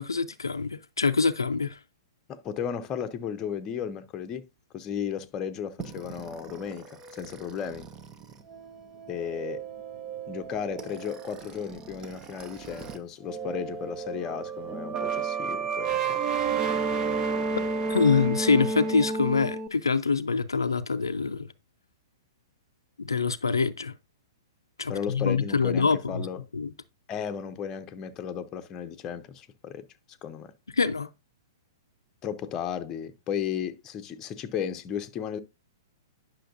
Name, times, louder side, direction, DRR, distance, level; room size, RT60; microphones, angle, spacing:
voice 1, 0.0-1.8 17.9-21.5 23.0-23.9 24.8-26.3 26.5-26.7 30.8-31.1, left 4 dB, 80° left, 0.5 m, -25 dB
voice 2, 2.3-4.4 4.7-6.9 7.1-7.9 9.1-9.6 10.3-16.2 24.9-26.4 27.1-30.5 32.2-35.4, left 8 dB, 25° left, 0.7 m, -34 dB
sound 1, 5.8-13.0 13.3-19.7, right 5 dB, 25° right, 0.8 m, -32 dB
10.0 x 5.9 x 2.6 m
figure-of-eight pair, 110°, 2 cm